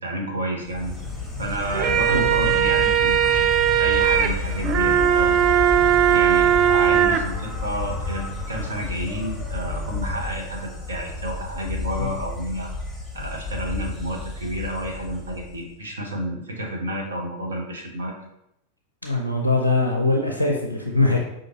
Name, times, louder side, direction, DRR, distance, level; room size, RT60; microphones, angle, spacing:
voice 1, 0.0-1.0 1.4-3.5 3.8-5.5 6.1-12.7 13.1-18.1, right 1 dB, 70° right, 0 dB, 0.8 m, -30 dB
Insect, 0.6-15.7, left 3 dB, 5° left, 0.9 m, -31 dB
sound 1, 1.6-7.2, right 9 dB, 35° right, 0.3 m, -19 dB
voice 2, 2.1-2.5 12.0-12.1 19.0-21.2, left 2 dB, 90° left, 1 dB, 0.4 m, -22 dB
5.1 x 2.5 x 2.8 m, 0.80 s
figure-of-eight pair, 90°, 0 cm